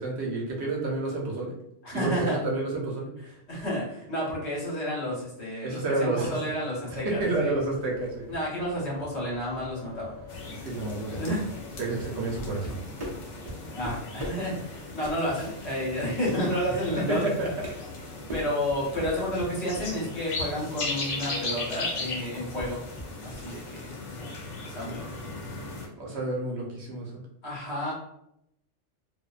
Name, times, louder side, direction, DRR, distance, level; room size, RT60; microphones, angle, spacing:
voice 1, 0.0-1.5 1.9-3.1 5.6-6.4 6.9-8.3 10.6-11.4 11.8-12.8 13.8-13.9 17.1-17.5 26.0-27.1, right 2 dB, 70° right, -2 dB, 0.9 m, -30 dB
voice 2, 1.8-2.4 3.5-7.6 8.3-10.2 11.1-11.5 13.7-17.3 18.3-22.8 23.2-25.2 27.4-27.9, equal, 65° left, -6 dB, 1.3 m, -31 dB
sound 1, 6.8-12.4, left 5 dB, 20° left, 0.8 m, -48 dB
sound 2, 10.3-25.9, left 3 dB, 85° left, 1.0 m, -38 dB
sound 3, 11.7-17.0 17.3-21.9 22.2-23.6, equal, 35° right, 0.6 m, -41 dB
2.5 x 2.1 x 2.3 m, 0.80 s
omnidirectional pair, 1.2 m